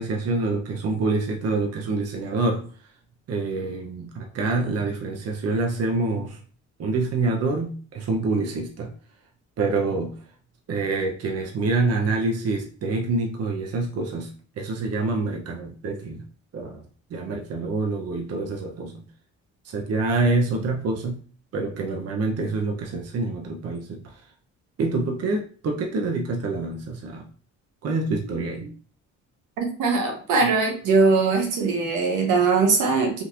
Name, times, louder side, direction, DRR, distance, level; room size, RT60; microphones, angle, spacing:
voice 1, 0.0-2.7 3.3-6.4 6.8-8.9 9.6-10.2 10.7-14.3 14.6-16.2 16.5-16.8 17.1-19.0 19.6-21.2 21.5-24.2 24.8-27.3 27.8-28.7, right 3 dB, 55° right, 1 dB, 0.7 m, -26 dB
voice 2, 29.6-33.2, right 4 dB, 85° right, 1 dB, 1.1 m, -21 dB
3.7 x 2.8 x 2.5 m, 0.42 s
cardioid pair, 90°, 30 cm